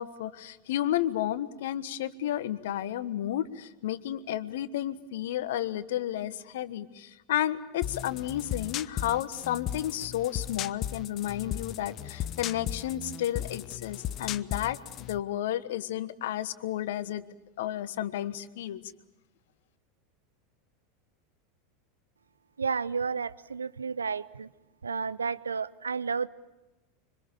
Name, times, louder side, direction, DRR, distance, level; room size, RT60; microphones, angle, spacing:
voice 1, 0.0-17.2 17.6-18.9, left 12 dB, 65° left, 15 dB, 1.3 m, -32 dB
Tech Bass, 7.8-15.2, left 11 dB, 40° left, 0.9 m, -36 dB
voice 2, 22.6-24.5 24.8-26.3, right 5 dB, 80° right, 17 dB, 0.8 m, -31 dB
26.0 x 25.0 x 7.2 m, 1.0 s
figure-of-eight pair, 85°, 0 cm